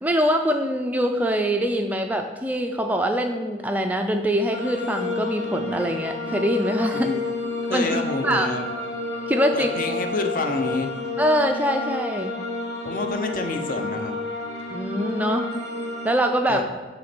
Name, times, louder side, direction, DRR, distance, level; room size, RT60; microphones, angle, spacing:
voice 1, 0.0-7.1 7.7-8.5 9.3-9.7 11.2-12.3 14.7-15.5 16.0-16.6, equal, 10° right, 5 dB, 0.3 m, -23 dB
sound 1, 4.5-16.1, left 3 dB, 65° left, 1.1 m, -30 dB
voice 2, 7.7-8.7 9.5-10.9 12.8-14.1 16.5-16.6, left 3 dB, 50° left, 5 dB, 0.7 m, -28 dB
7.9 x 3.1 x 6.0 m, 1.3 s
head